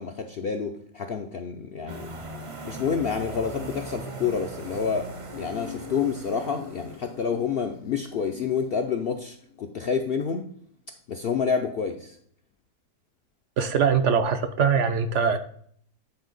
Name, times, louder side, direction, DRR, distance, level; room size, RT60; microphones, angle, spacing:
voice 1, 0.0-2.1 2.6-5.1 5.4-10.5 11.1-12.2, left 6 dB, 65° left, 4 dB, 0.6 m, -28 dB
sound 1, 1.9-7.4, right 3 dB, 35° right, 0.5 m, -39 dB
Insect, 5.3-10.3, left 6 dB, 90° left, 1.6 m, -44 dB
voice 2, 13.6-15.4, right 6 dB, 65° right, 8 dB, 0.8 m, -22 dB
9.0 x 4.3 x 3.9 m, 0.62 s
omnidirectional pair, 1.5 m